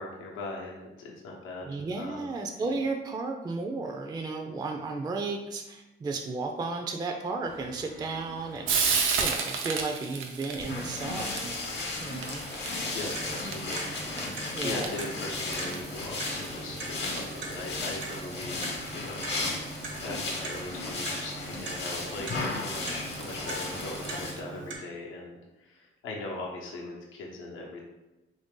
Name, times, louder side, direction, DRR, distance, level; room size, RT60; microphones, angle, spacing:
voice 1, 0.0-2.3 12.9-13.8 14.2-19.2 20.0-27.8, left 2 dB, 90° left, -1 dB, 0.7 m, -40 dB
voice 2, 1.6-8.7 9.2-11.6 12.0-12.5 14.5-14.9, right 3 dB, 20° right, 3 dB, 0.3 m, -33 dB
Frying (food), 7.4-24.4, right 5 dB, 90° right, 0.6 m, -36 dB
sound 1, 10.6-24.3, left 3 dB, 60° left, 0.9 m, -35 dB
Clock, 12.7-24.8, right 3 dB, 75° right, 1.0 m, -41 dB
3.2 x 2.6 x 3.6 m, 1.0 s
cardioid pair, 90°, 20 cm